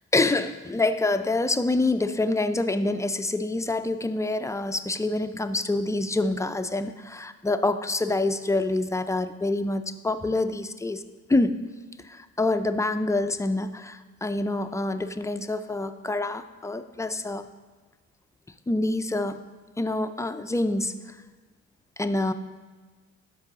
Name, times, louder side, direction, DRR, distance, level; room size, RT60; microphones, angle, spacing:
voice 1, 0.1-11.0 11.3-11.6 12.0-17.4 18.7-19.4 19.8-21.2 22.0-22.3, left 2 dB, 10° left, 10 dB, 0.3 m, -26 dB
12.5 x 4.7 x 3.6 m, 1.4 s
cardioid pair, 90°, 30 cm